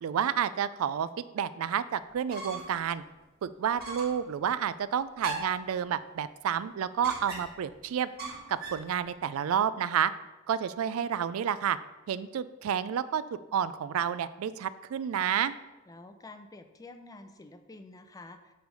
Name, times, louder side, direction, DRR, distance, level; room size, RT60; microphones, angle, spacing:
voice 1, 0.0-3.0 3.4-8.1 8.5-10.1 10.5-11.8 12.1-15.5, right 8 dB, 85° right, 15 dB, 0.3 m, -30 dB
sound 1, 2.1-2.8 3.2-3.3 3.8-4.2 5.2-5.7 7.0-7.7 8.2-8.9, right 3 dB, 50° right, 1.5 m, -38 dB
voice 2, 15.9-18.5, left 2 dB, 15° left, 8 dB, 0.4 m, -49 dB
8.0 x 3.3 x 5.3 m, 1.1 s
head